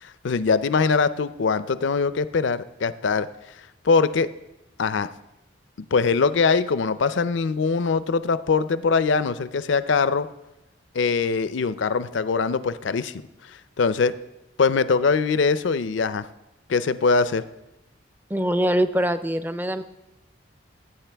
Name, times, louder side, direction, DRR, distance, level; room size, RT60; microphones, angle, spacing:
voice 1, 0.0-3.3 3.8-4.3 4.8-5.1 5.9-10.3 10.9-13.2 13.5-14.1 14.6-16.3 16.7-17.4, left 4 dB, 70° left, 14 dB, 0.5 m, -22 dB
voice 2, 18.3-19.8, right 1 dB, 10° right, 11 dB, 0.4 m, -23 dB
18.0 x 8.5 x 3.4 m, 0.95 s
head